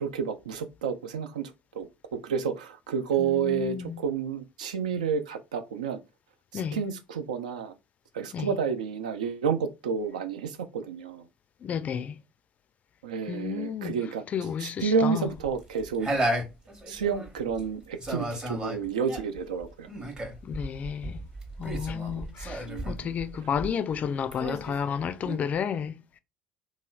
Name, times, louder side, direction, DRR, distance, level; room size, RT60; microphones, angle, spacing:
voice 1, 0.0-1.9 2.1-6.0 6.5-7.7 8.1-11.2 13.0-14.2 14.6-16.2 16.9-19.9 22.6-23.1, right 6 dB, 75° right, 0.4 m, -30 dB
voice 2, 3.2-4.0 6.5-6.8 8.3-8.5 11.6-12.2 13.3-14.0 14.3-15.3 20.4-21.2 21.6-26.2, left 7 dB, 35° left, 0.3 m, -32 dB
sound 1, 15.3-17.7 18.0-24.0 24.3-25.4, right 1 dB, 25° right, 0.9 m, -34 dB
2.9 x 2.8 x 2.3 m
figure-of-eight pair, 60°, 4 cm